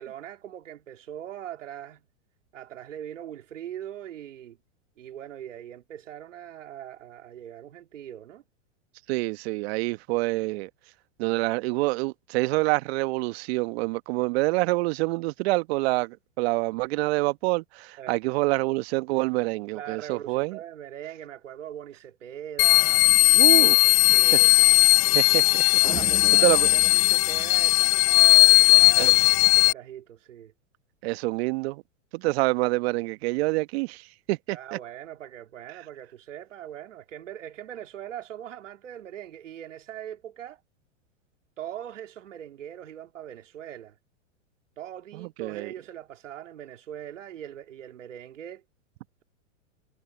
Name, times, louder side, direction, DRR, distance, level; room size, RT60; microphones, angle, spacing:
voice 1, 0.0-2.0 2.5-4.6 5.0-8.4 18.0-18.2 19.7-23.1 23.8-24.8 25.8-30.5 34.5-40.6 41.6-44.0 44.8-48.6, right 10 dB, 80° right, 3.7 m, -41 dB
voice 2, 9.1-10.7 11.2-20.6 23.3-24.2 25.1-25.6 26.4-26.7 29.0-29.1 31.0-31.8 32.1-34.8 45.1-45.7, right 23 dB, 55° right, 1.2 m, -27 dB
sound 1, 22.6-29.7, left 24 dB, 35° left, 0.5 m, -18 dB
sound 2, 25.8-28.3, right 11 dB, 15° right, 0.3 m, -38 dB
hypercardioid pair, 110°, 37 cm